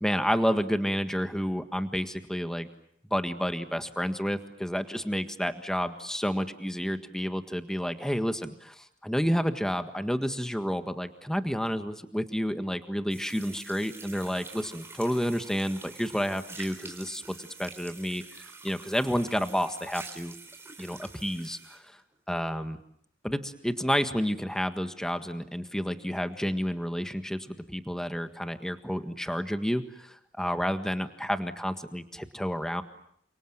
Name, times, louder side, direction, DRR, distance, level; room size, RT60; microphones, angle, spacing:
voice 1, 0.0-2.7 3.1-20.3 20.8-21.8 22.3-22.8 23.2-32.8, equal, 5° left, 8 dB, 1.6 m, -30 dB
sound 1, 13.1-21.8, right 3 dB, 15° right, 4.1 m, -46 dB
30.0 x 27.0 x 7.4 m, 0.69 s
head